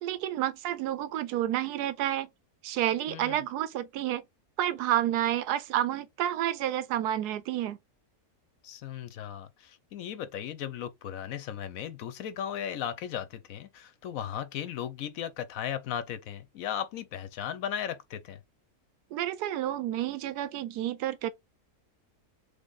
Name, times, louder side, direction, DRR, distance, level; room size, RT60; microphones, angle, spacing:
voice 1, 0.0-2.3 2.6-4.2 4.6-7.8 19.1-21.3, right 12 dB, 90° right, 1.1 m, -30 dB
voice 2, 3.1-3.4 8.6-18.4, left 9 dB, 70° left, 1.0 m, -36 dB
3.6 x 3.2 x 3.8 m
omnidirectional pair, 1.7 m